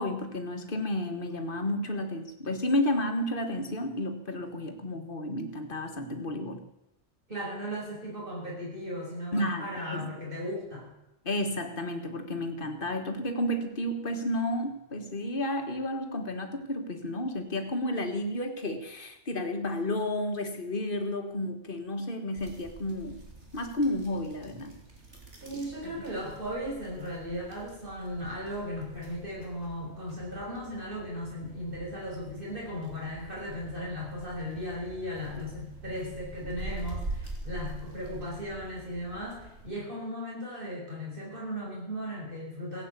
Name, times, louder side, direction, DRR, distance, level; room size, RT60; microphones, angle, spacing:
voice 1, 0.0-6.6 9.3-10.1 11.2-23.2 23.5-24.7 25.8-25.9, left 1 dB, 50° left, 5 dB, 1.9 m, -31 dB
voice 2, 7.3-10.9 25.4-42.8, equal, 50° right, -3 dB, 6.3 m, -37 dB
sound 1, 22.4-39.7, right 2 dB, 75° right, 3.1 m, -45 dB
16.5 x 8.6 x 8.3 m, 0.87 s
omnidirectional pair, 1.2 m